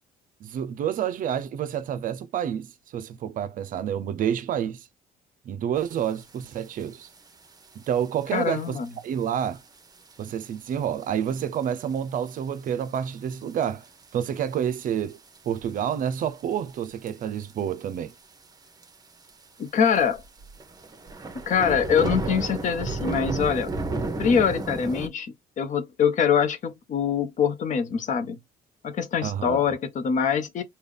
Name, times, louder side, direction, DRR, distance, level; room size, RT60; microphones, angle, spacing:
voice 1, 0.4-4.9 5.5-7.1 7.8-8.8 9.0-9.6 10.2-13.9 14.1-15.2 15.5-18.1 29.2-29.7, right 9 dB, 55° right, 0.5 m, -29 dB
Heavy Rain Thunder Clap Dubrovnik, 6.4-6.5 6.8-7.2 7.8-8.0 8.6-8.7 9.4-9.5 9.8-9.9 10.1-10.2 11.3-11.6 12.0-12.1 12.9-13.0 13.6-14.0 14.4-14.5 15.1-15.8 16.8-17.1 17.4-17.5 17.8-17.9 18.1-18.2 18.8-18.9 19.3-19.4 20.0-25.1, right 3 dB, 20° right, 1.0 m, -31 dB
voice 2, 8.3-8.9 19.6-20.2 21.3-23.7 24.2-28.4 28.8-30.6, left 7 dB, 50° left, 0.8 m, -24 dB
3.7 x 2.3 x 3.3 m
cardioid pair, 110°, 17 cm